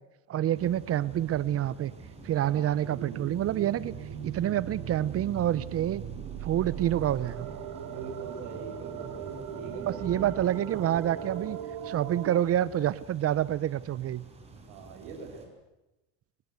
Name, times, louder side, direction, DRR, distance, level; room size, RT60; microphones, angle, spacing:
voice 1, 0.3-1.9 2.2-3.9 4.2-6.0 6.4-7.5 9.9-11.6 11.8-14.2, right 11 dB, 35° right, 19 dB, 0.8 m, -27 dB
sound 1, 0.5-15.5, right 3 dB, 15° right, 5.8 m, -47 dB
sound 2, 2.8-12.4, right 9 dB, 60° right, 3.2 m, -39 dB
voice 2, 7.7-10.3 14.5-15.5, right 5 dB, 75° right, 1 dB, 6.4 m, -43 dB
26.5 x 20.5 x 8.3 m, 1.0 s
cardioid pair, 125°, 38 cm